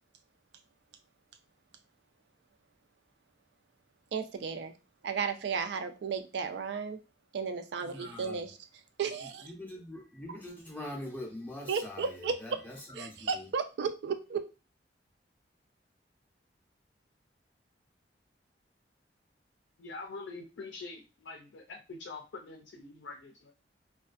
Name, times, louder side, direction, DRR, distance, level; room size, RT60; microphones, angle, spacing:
voice 1, 4.1-4.7 5.0-7.0 7.3-8.6 9.0-9.5 11.7-12.3 13.0-14.4, right 5 dB, 70° right, 0.4 m, -34 dB
voice 2, 7.8-8.5 9.2-13.5, left 1 dB, 10° left, 0.4 m, -43 dB
voice 3, 19.8-23.5, left 3 dB, 90° left, 0.4 m, -45 dB
2.4 x 2.3 x 2.4 m
head